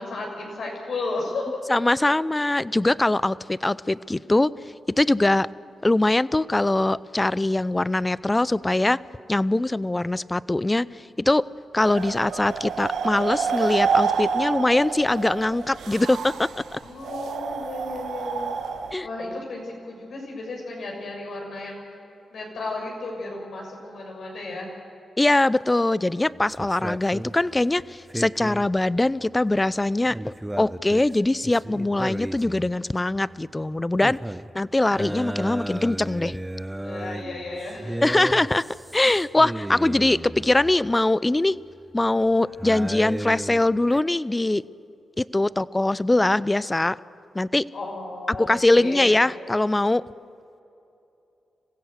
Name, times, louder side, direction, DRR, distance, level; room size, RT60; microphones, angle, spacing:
voice 1, 0.0-1.4 16.8-18.5 19.0-21.9 22.3-24.7 36.8-38.0 47.7-49.2, left 2 dB, 70° left, 0 dB, 6.4 m, -34 dB
voice 2, 1.7-4.5 4.9-5.5 5.8-9.0 9.3-11.5 11.7-16.8 18.9-19.1 25.2-34.2 34.5-36.4 38.0-38.7 38.9-41.6 41.9-44.6 45.2-47.0 47.3-47.7 48.3-50.0, left 2 dB, 20° left, 20 dB, 0.6 m, -22 dB
sound 1, 11.8-18.9, right 6 dB, 80° right, 1.3 m, -28 dB
sound 2, 26.3-41.0 41.9-44.0, right 1 dB, 10° right, 0.8 m, -35 dB
26.0 x 16.0 x 8.0 m, 2.8 s
supercardioid pair, 45°, 0 cm